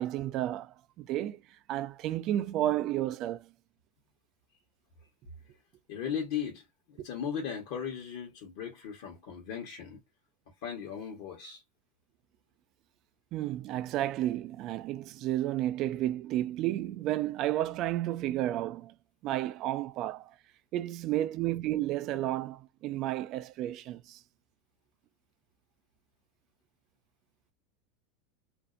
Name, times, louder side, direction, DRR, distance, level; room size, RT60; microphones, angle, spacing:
voice 1, 0.0-1.4 1.7-3.5 13.3-18.9 19.2-20.3 20.7-24.2, right 13 dB, 45° right, 0.3 m, -32 dB
voice 2, 5.9-10.0 10.6-11.6, left 7 dB, 65° left, 1.0 m, -37 dB
2.6 x 2.0 x 2.4 m
supercardioid pair, 130°, 0 cm